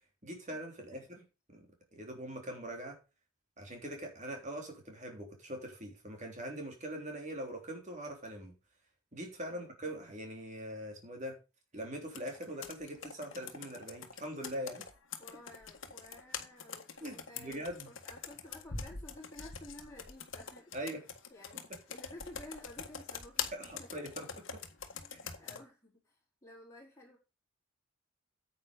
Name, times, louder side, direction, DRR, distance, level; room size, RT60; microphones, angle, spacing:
voice 1, 0.2-1.2 1.5-1.7 1.9-3.0 3.6-8.5 9.1-11.4 11.7-14.9 17.0-17.9 20.7-21.0 21.7-21.8 23.5-24.6 25.1-25.2, right 1 dB, 35° right, 2 dB, 3.4 m, -42 dB
Computer keyboard, 12.1-25.6, left 6 dB, 65° left, 1.6 m, -44 dB
voice 2, 15.2-20.8 21.3-23.9 24.9-27.2, left 1 dB, 15° left, -4 dB, 4.8 m, -53 dB
9.5 x 8.5 x 5.2 m, 0.30 s
head